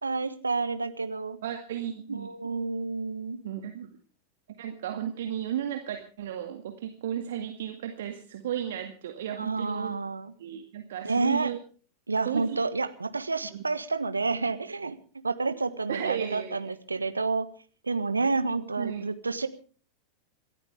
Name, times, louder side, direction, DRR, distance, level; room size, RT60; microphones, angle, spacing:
voice 1, 0.0-1.4 2.1-3.4 9.4-10.3 11.0-11.5 12.1-15.0 15.2-17.5 17.8-19.5, right 3 dB, 80° right, 11 dB, 1.4 m, -29 dB
voice 2, 1.4-2.3 3.4-3.9 4.6-10.0 10.4-11.6 12.2-12.6 13.5-13.6 15.9-16.6 18.8-19.1, right 10 dB, 60° right, 5 dB, 2.0 m, -34 dB
27.0 x 14.0 x 3.5 m, 0.40 s
figure-of-eight pair, 90°, 0 cm